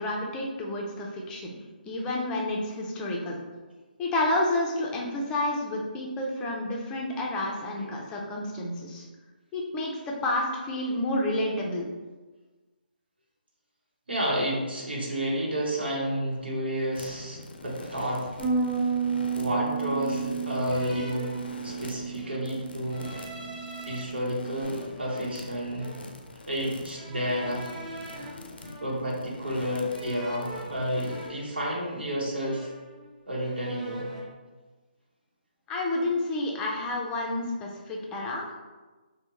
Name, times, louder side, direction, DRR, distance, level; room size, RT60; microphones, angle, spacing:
voice 1, 0.0-1.5 1.8-3.4 4.0-9.1 9.5-11.9 35.7-38.6, left 1 dB, 15° left, -1 dB, 0.4 m, -30 dB
voice 2, 14.1-18.4 18.8-18.9 19.4-21.3 21.6-23.1 23.9-26.0 26.5-27.7 28.8-32.7 33.3-34.1, equal, 80° right, -4 dB, 1.0 m, -30 dB
sound 1, 16.9-31.3, left 2 dB, 75° left, 0.4 m, -45 dB
Bass guitar, 18.4-24.6, right 5 dB, 25° right, 1.0 m, -32 dB
sound 2, 18.4-18.5 19.3-19.8 20.6-22.0 22.8-24.0 24.6-26.1 26.9-29.3 29.9-32.1 32.4-33.1 33.4-34.3, right 1 dB, 50° right, 0.9 m, -42 dB
3.5 x 2.1 x 2.8 m, 1.3 s
figure-of-eight pair, 145°, 5 cm